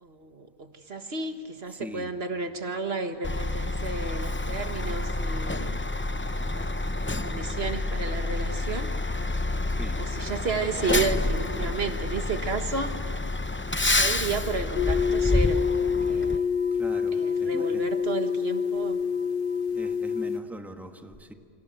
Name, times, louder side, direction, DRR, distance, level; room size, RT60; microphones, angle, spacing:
voice 1, 0.0-5.8 6.4-6.7 7.0-8.9 10.0-13.0 13.9-16.5 17.1-19.0, right 4 dB, 75° right, 7 dB, 1.8 m, -32 dB
voice 2, 1.8-2.1 9.8-10.0 16.7-17.8 19.7-21.3, right 1 dB, ahead, 5 dB, 1.5 m, -41 dB
Truck, 3.2-16.4, left 2 dB, 15° left, 0.5 m, -28 dB
sound 1, 14.7-20.4, left 6 dB, 55° left, 1.2 m, -26 dB
29.0 x 26.0 x 7.9 m, 2.5 s
omnidirectional pair, 1.1 m